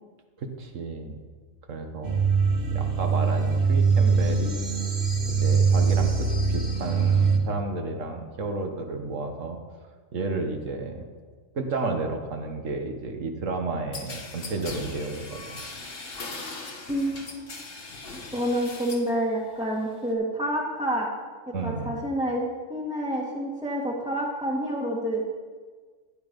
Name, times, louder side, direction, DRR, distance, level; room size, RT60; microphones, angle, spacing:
voice 1, 0.4-1.2 1.7-2.2 2.7-4.7 5.3-9.6 10.1-11.1 11.5-15.6 21.5-22.1, right 3 dB, 75° right, 5 dB, 1.6 m, -32 dB
sound 1, 2.0-7.4, right 5 dB, 45° right, 1.9 m, -22 dB
sound 2, 13.9-19.1 19.5-20.1, left 3 dB, 45° left, 1.5 m, -39 dB
voice 2, 16.9-17.6 18.3-21.1 21.6-25.3, right 1 dB, 5° right, -4 dB, 1.6 m, -28 dB
15.5 x 10.0 x 5.3 m, 1.5 s
omnidirectional pair, 1.4 m